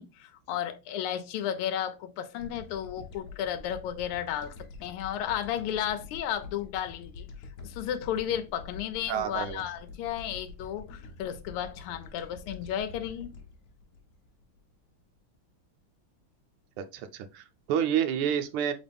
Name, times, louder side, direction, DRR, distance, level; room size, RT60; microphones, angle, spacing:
voice 1, 0.0-7.3 7.6-13.3, left 10 dB, 85° left, 1.5 m, -33 dB
sound 1, 2.4-14.9, left 4 dB, 60° left, 1.0 m, -47 dB
voice 2, 9.1-9.6 16.8-18.7, right 9 dB, 80° right, 1.5 m, -29 dB
4.0 x 3.7 x 3.4 m
omnidirectional pair, 2.4 m